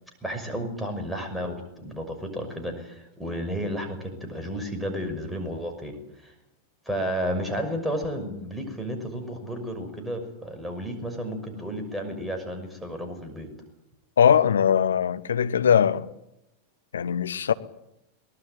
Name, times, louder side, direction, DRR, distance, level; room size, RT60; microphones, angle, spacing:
voice 1, 0.2-6.3 6.9-13.5, equal, 5° right, 6.0 m, -32 dB
voice 2, 14.2-16.1 16.9-17.5, left 8 dB, 65° left, 1.2 m, -21 dB
23.0 x 19.5 x 9.0 m
figure-of-eight pair, 90°, 0 cm